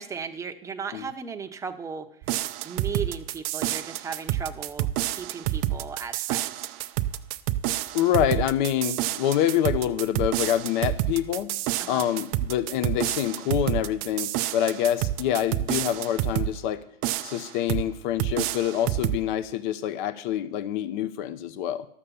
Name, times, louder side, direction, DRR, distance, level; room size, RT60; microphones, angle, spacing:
voice 1, 0.0-2.2 2.6-6.7 11.8-12.0, right 6 dB, 10° right, 4 dB, 0.8 m, -36 dB
sound 1, 2.2-16.5 17.0-17.9 18.2-19.2, right 14 dB, 40° right, 0.6 m, -29 dB
voice 2, 7.9-11.5 11.9-16.8 17.2-21.9, left 11 dB, 50° left, 13 dB, 0.8 m, -26 dB
11.5 x 7.2 x 6.9 m, 0.68 s
hypercardioid pair, 115°, 31 cm